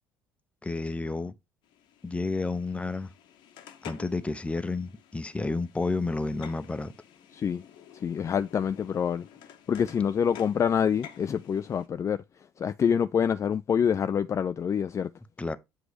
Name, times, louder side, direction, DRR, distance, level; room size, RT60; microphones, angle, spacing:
voice 1, 0.6-1.3 2.0-3.1 3.8-6.9 15.4-15.6, left 3 dB, 15° left, 0.8 m, -31 dB
sound 1, 1.6-11.9, left 9 dB, 60° left, 1.0 m, -51 dB
voice 2, 7.3-7.6 7.9-9.3 9.7-12.2 12.6-15.1, left 7 dB, 35° left, 0.4 m, -26 dB
7.8 x 2.9 x 5.0 m
figure-of-eight pair, 55°, 9 cm